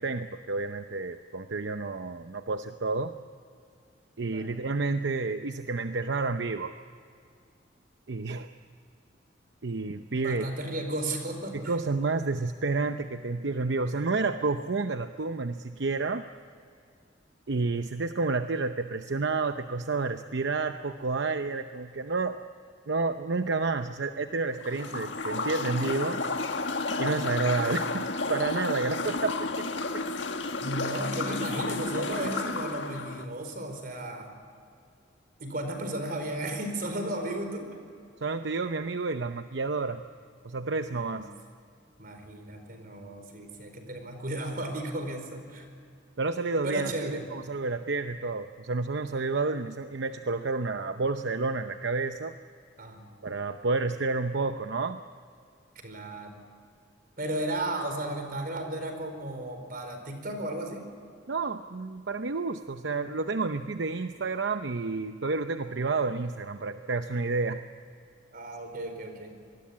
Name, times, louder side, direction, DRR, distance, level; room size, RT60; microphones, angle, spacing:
voice 1, 0.0-3.1 4.2-6.7 8.1-8.5 9.6-10.5 11.5-16.2 17.5-22.4 22.9-26.2 27.0-30.1 38.2-40.0 40.4-41.3 46.2-52.4 53.2-55.0 61.3-67.6, right 3 dB, 75° right, 8 dB, 0.8 m, -30 dB
voice 2, 10.1-11.7 30.6-34.3 35.4-37.7 40.9-41.3 42.0-45.7 46.6-47.3 52.8-53.1 55.8-56.4 57.2-60.8 68.3-69.4, right 1 dB, 55° right, 6 dB, 4.6 m, -34 dB
sound 1, 24.6-33.2, left 3 dB, 85° left, 1.6 m, -32 dB
26.0 x 20.5 x 8.6 m, 2.3 s
head